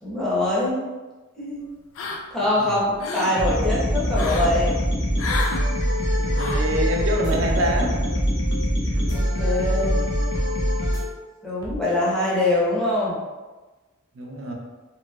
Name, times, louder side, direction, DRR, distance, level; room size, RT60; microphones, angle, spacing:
voice 1, 0.0-0.9 1.4-1.6 2.3-4.8 9.1-10.0 11.4-13.2, left 1 dB, 5° left, -9 dB, 0.8 m, -23 dB
sound 1, 2.0-2.5 2.8-3.4 4.1-4.6 5.2-5.6 6.4-6.7, left 4 dB, 80° left, 0.4 m, -30 dB
sound 2, 3.4-11.0, equal, 60° left, 0.9 m, -23 dB
sound 3, 4.5-5.0 5.3-5.5 6.1-6.8 7.1-7.3 7.9-8.7 9.0-9.2 9.8-10.5 10.8-11.0 11.6-11.8, equal, 20° left, 0.4 m, -33 dB
voice 2, 6.2-7.9 14.2-14.5, right 1 dB, 75° right, 1 dB, 0.5 m, -25 dB
3.0 x 2.9 x 2.2 m, 1.2 s
head